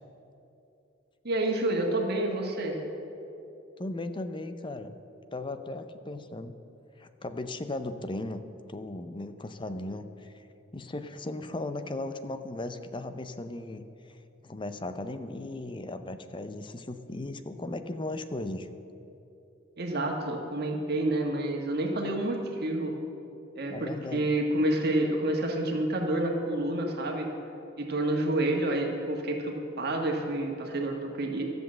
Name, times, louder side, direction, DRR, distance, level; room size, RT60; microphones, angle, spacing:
voice 1, 1.2-2.8 19.8-22.9 23.5-27.3 27.8-31.4, right 1 dB, 55° right, 1 dB, 1.6 m, -29 dB
voice 2, 3.8-5.0 5.3-6.6 7.0-8.4 8.7-10.4 10.7-18.7 23.7-24.3, left 2 dB, 25° left, 9 dB, 0.6 m, -37 dB
13.0 x 7.9 x 7.6 m, 2.9 s
head